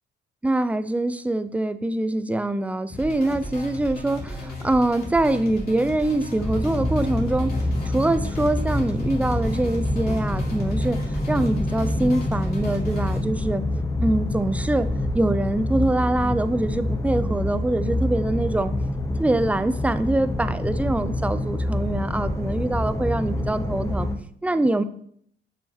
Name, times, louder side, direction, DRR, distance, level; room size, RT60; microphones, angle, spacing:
voice 1, 0.4-7.5 7.8-13.7 14.0-14.9 15.1-18.7 19.2-24.1 24.4-24.8, right 1 dB, 5° right, 0.4 m, -24 dB
sound 1, 2.9-13.2, left 1 dB, 50° left, 3.3 m, -35 dB
sound 2, 6.4-24.2, left 1 dB, 15° left, 0.8 m, -26 dB
7.4 x 6.9 x 3.2 m
cardioid pair, 90°, 20 cm